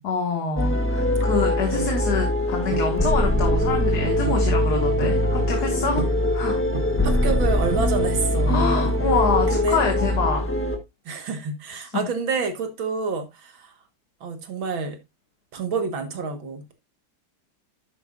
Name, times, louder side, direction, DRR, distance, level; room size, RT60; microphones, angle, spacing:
voice 1, 0.0-6.0 6.3-6.6 8.5-10.5 11.7-12.0, left 4 dB, 55° left, 2.2 m, -26 dB
sound 1, 0.6-10.8, left 1 dB, 10° left, 0.9 m, -22 dB
sound 2, 2.7-3.0 3.4-3.6 4.3-4.5 4.8-5.3 6.0-6.3 6.7-7.1 7.7-8.2, right 7 dB, 55° right, 0.6 m, -33 dB
voice 2, 7.0-8.9 9.5-9.8 11.1-13.7 14.2-15.0 15.5-16.7, right 4 dB, 75° right, 2.3 m, -28 dB
11.0 x 8.3 x 2.5 m
omnidirectional pair, 2.1 m